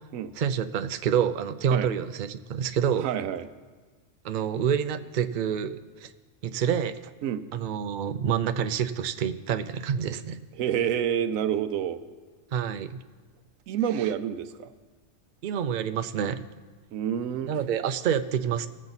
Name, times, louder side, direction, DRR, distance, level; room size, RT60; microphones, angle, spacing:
voice 1, 0.4-3.1 4.2-5.8 6.0-6.1 6.4-7.0 7.5-10.4 12.5-13.0 14.0-14.1 15.4-16.4 17.5-18.7, right 8 dB, 60° right, 10 dB, 0.5 m, -27 dB
voice 2, 3.0-3.5 7.2-7.4 10.6-12.0 13.7-14.7 16.9-17.5, right 9 dB, 85° right, 11 dB, 1.0 m, -28 dB
19.0 x 7.4 x 4.0 m, 1.4 s
omnidirectional pair, 1.4 m